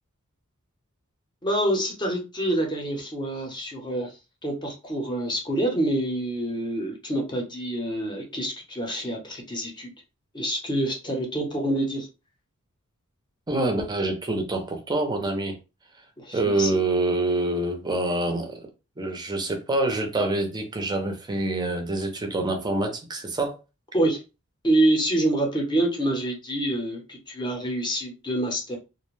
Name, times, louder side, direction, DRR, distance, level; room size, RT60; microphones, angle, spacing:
voice 1, 1.4-4.1 4.4-9.9 10.3-12.1 16.2-16.8 23.9-24.2 24.6-28.8, right 1 dB, 20° left, 0.7 m, -26 dB
voice 2, 13.5-15.6 16.3-18.6 19.0-23.5, right 2 dB, 20° right, 0.5 m, -26 dB
2.5 x 2.1 x 3.1 m
head